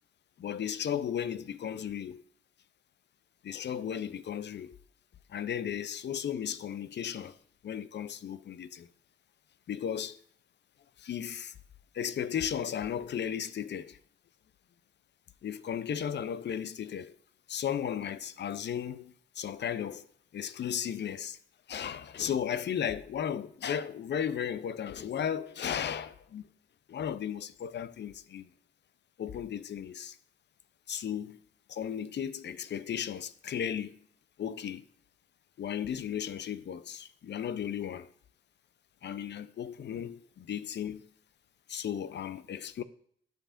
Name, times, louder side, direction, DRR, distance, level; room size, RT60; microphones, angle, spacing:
voice 1, 0.4-2.2 3.4-4.8 5.3-7.4 7.6-8.9 9.7-10.2 11.0-11.5 11.9-14.0 15.4-17.2 17.5-20.1 20.3-21.4 21.7-26.5 26.9-28.5 29.2-30.2 30.9-31.4 31.7-34.0 34.4-34.8 35.6-38.1 39.0-41.1 41.7-42.8, left 9 dB, 65° left, 0.5 m, -35 dB
11.5 x 5.1 x 2.5 m
cardioid pair, 85°, 20 cm